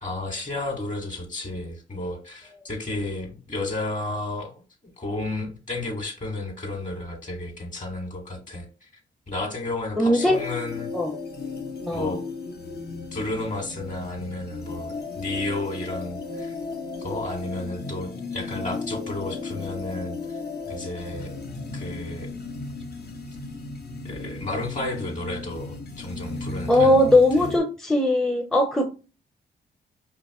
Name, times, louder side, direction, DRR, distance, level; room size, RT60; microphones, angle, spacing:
voice 1, 0.0-4.6 5.0-8.9 9.3-10.9 11.9-12.2 13.1-16.6 17.0-21.3 21.7-22.3 24.0-27.5, left 2 dB, 40° left, 1.9 m, -32 dB
voice 2, 10.0-10.4 10.9-11.1 11.9-12.1 26.7-28.9, left 1 dB, ahead, 0.6 m, -19 dB
sound 1, 10.3-27.6, left 3 dB, 60° left, 1.0 m, -35 dB
5.0 x 3.0 x 3.0 m
cardioid pair, 75°, 19 cm